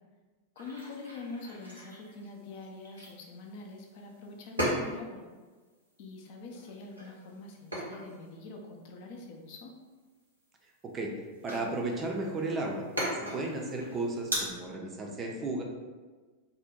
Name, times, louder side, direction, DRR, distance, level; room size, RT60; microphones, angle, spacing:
voice 1, 0.6-5.2 6.0-9.8, left 3 dB, 50° left, 1 dB, 0.5 m, -44 dB
sound 1, 0.6-14.3, equal, 85° right, 0.9 m, -40 dB
voice 2, 10.8-12.8 13.2-15.6, right 2 dB, 25° right, 1 dB, 0.4 m, -34 dB
2.7 x 2.1 x 3.6 m, 1.4 s
figure-of-eight pair, 90°, 0 cm